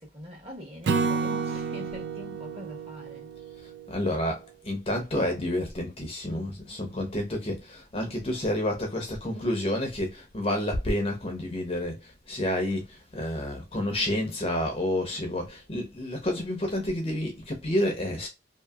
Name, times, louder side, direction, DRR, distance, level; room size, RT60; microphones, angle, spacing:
voice 1, 0.0-3.4, equal, 30° right, 1.1 m, -43 dB
Acoustic guitar / Strum, 0.9-4.2, right 4 dB, 75° right, 0.3 m, -30 dB
voice 2, 3.6-18.3, left 1 dB, 30° left, 0.7 m, -29 dB
2.7 x 2.6 x 2.3 m
head